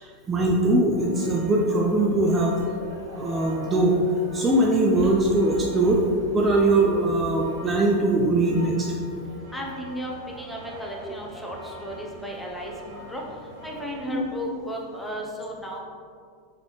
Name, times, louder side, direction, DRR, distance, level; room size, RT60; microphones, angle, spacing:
voice 1, 0.3-2.6 3.2-3.9 4.3-6.0 6.3-8.9 14.1-14.2, right 2 dB, 25° right, -1 dB, 0.4 m, -21 dB
sound 1, 0.9-14.2, right 1 dB, 70° right, 0.6 m, -42 dB
sound 2, 5.0-8.3 8.8-8.9, right 2 dB, 45° right, 1.4 m, -40 dB
voice 2, 9.5-15.8, equal, 5° left, -2 dB, 0.7 m, -35 dB
3.7 x 3.1 x 3.1 m, 2.2 s
figure-of-eight pair, 85°, 0 cm